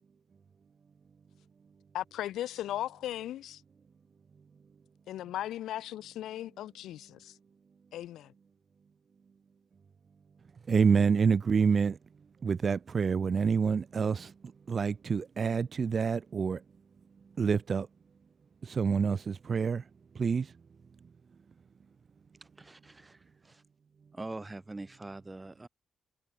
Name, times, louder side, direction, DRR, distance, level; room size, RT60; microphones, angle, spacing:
voice 1, 1.9-3.6 5.1-7.4 7.9-8.3, left 13 dB, 85° left, 0.6 m, -37 dB
voice 2, 10.7-12.0 12.4-14.3 14.7-16.6 17.4-17.9 18.6-19.8 20.2-20.5, right 6 dB, 45° right, 0.7 m, -27 dB
voice 3, 22.4-23.6 24.1-25.7, right 2 dB, 20° right, 3.8 m, -44 dB
cardioid pair, 70°, 0 cm